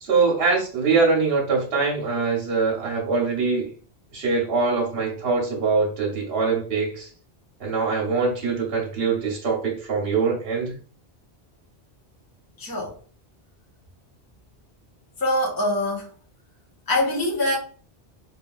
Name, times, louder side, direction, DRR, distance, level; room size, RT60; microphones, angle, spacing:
voice 1, 0.0-3.7 4.1-7.1 7.6-10.8, right 4 dB, 70° right, 1.1 m, -23 dB
voice 2, 12.6-12.9 15.2-16.1 16.9-17.6, left 1 dB, 20° left, 0.9 m, -23 dB
3.0 x 2.7 x 2.3 m
omnidirectional pair, 1.1 m